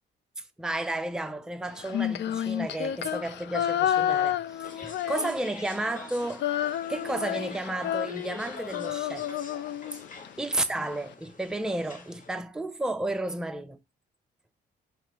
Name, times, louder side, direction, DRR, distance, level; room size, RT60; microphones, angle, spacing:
voice 1, 0.6-6.5 6.9-9.3 10.4-13.8, right 2 dB, 5° right, 0.4 m, -32 dB
Female singing, 1.8-5.7 6.0-10.3, left 11 dB, 60° left, 0.4 m, -30 dB
sound 1, 4.6-12.3, left 4 dB, 40° left, 0.8 m, -45 dB
4.8 x 2.6 x 2.7 m
cardioid pair, 90°, 20 cm